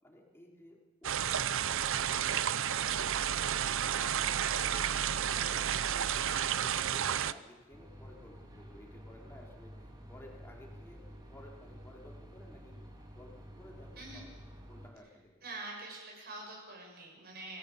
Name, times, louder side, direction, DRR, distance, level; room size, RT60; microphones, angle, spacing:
voice 1, 0.0-2.4 2.8-6.1 6.4-12.8 13.1-14.4 14.7-15.3, left 1 dB, 10° left, -1 dB, 4.1 m, -55 dB
sound 1, 1.0-7.3, right 9 dB, 65° right, 0.7 m, -31 dB
sound 2, 7.7-14.9, equal, 20° right, 3.4 m, -51 dB
voice 2, 15.4-17.6, right 2 dB, 50° right, -1 dB, 6.9 m, -45 dB
25.0 x 17.0 x 8.3 m, 1.3 s
head